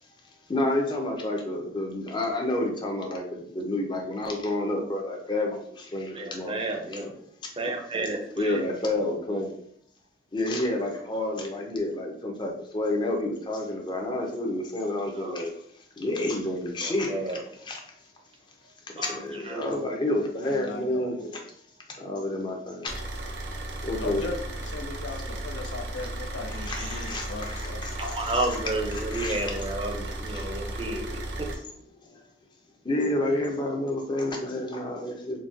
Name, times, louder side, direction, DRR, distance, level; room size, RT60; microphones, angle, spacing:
voice 1, 0.5-6.6 6.9-7.1 8.4-9.5 10.3-15.5 16.0-17.2 17.6-17.8 18.9-21.4 22.0-22.9 23.8-24.2 26.7-28.5 29.1-29.4 30.3-30.4 32.8-35.4, left 1 dB, 25° left, 1 dB, 0.5 m, -29 dB
voice 2, 6.1-7.1 7.6-8.6 15.1-15.4 16.8-17.4 19.0-19.8 26.6-27.1 28.0-31.5, right 2 dB, 30° right, 2 dB, 0.5 m, -32 dB
voice 3, 20.4-21.1 24.0-28.2 33.2-33.5, left 3 dB, 80° left, 6 dB, 0.4 m, -38 dB
Car / Idling, 22.9-31.5, right 1 dB, 75° right, 0.5 m, -35 dB
3.9 x 2.2 x 2.5 m, 0.67 s
head